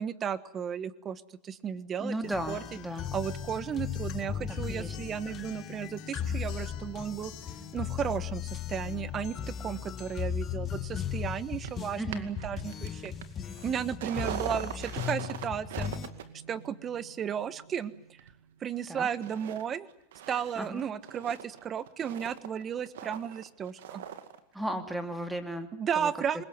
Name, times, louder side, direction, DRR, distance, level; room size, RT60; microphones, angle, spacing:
voice 1, 0.0-2.1 2.5-2.6 2.9-7.3 7.7-13.1 13.6-15.9 16.5-17.9 18.6-19.9 20.3-24.0 25.7-26.4, right 8 dB, 30° right, 16 dB, 1.4 m, -34 dB
voice 2, 2.0-3.1 4.7-5.0 12.0-12.3 18.9-19.1 20.6-20.8 24.5-25.7 26.0-26.1, right 1 dB, 5° right, 8 dB, 2.8 m, -35 dB
Acoustic guitar, 2.2-10.2, left 9 dB, 50° left, 6.9 m, -48 dB
sound 1, 2.3-16.1, left 9 dB, 30° left, 1.7 m, -37 dB
sound 2, 11.6-18.8 19.2-19.6 19.9-24.4 24.7-24.8, right 10 dB, 80° right, 2.2 m, -42 dB
23.5 x 20.5 x 9.6 m, 0.72 s
supercardioid pair, 120°, 0 cm